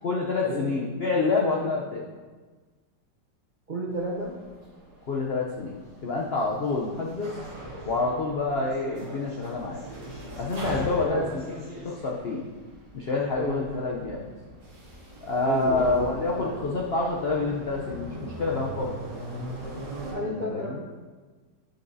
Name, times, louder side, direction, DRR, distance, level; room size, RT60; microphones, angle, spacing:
voice 1, 0.0-2.0 5.1-7.3 7.8-9.8 10.4-12.4 12.9-14.2 15.2-18.9 20.2-20.8, left 3 dB, 85° left, -1 dB, 0.5 m, -27 dB
voice 2, 3.7-4.4 11.0-11.3 13.3-13.6 15.4-16.6 20.1-20.8, right 1 dB, 55° right, -4 dB, 0.5 m, -32 dB
sound 1, 3.9-20.1, equal, 70° right, 2.6 m, -41 dB
9.1 x 6.8 x 2.7 m, 1.4 s
omnidirectional pair, 2.0 m